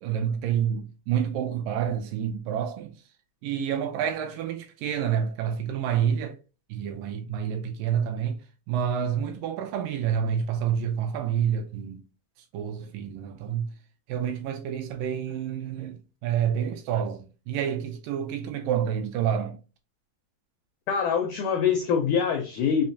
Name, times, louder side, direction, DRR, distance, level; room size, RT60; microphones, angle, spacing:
voice 1, 0.0-3.0 3.4-6.4 6.7-12.0 12.5-13.7 14.1-19.6, right 8 dB, 80° right, 2.1 m, -28 dB
voice 2, 20.9-22.9, left 7 dB, 85° left, 1.7 m, -24 dB
5.9 x 2.0 x 2.6 m
omnidirectional pair, 4.1 m